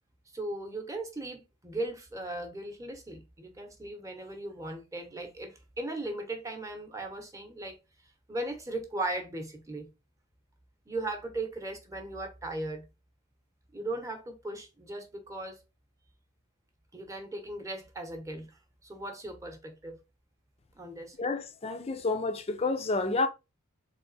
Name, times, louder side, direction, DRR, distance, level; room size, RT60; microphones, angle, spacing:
voice 1, 0.3-7.8 8.3-9.9 10.9-12.8 13.7-15.6 16.9-18.5 18.8-20.0 20.8-21.2, right 2 dB, 15° right, 0.9 m, -37 dB
voice 2, 21.2-23.3, left 3 dB, 30° left, 0.5 m, -29 dB
3.6 x 3.5 x 4.0 m
head